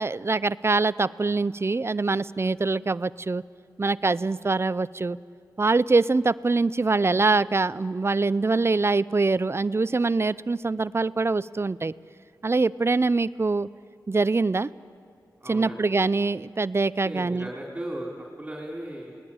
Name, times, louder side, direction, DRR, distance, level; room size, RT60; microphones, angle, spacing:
voice 1, 0.0-3.4 3.8-5.2 5.6-11.9 12.4-13.7 14.1-14.7 15.5-17.5, right 3 dB, 35° right, 18 dB, 0.6 m, -24 dB
voice 2, 15.4-15.8 17.0-18.1 18.4-19.2, right 1 dB, 20° right, -2 dB, 4.1 m, -36 dB
28.5 x 19.0 x 8.8 m, 2.4 s
cardioid pair, 45°, 7 cm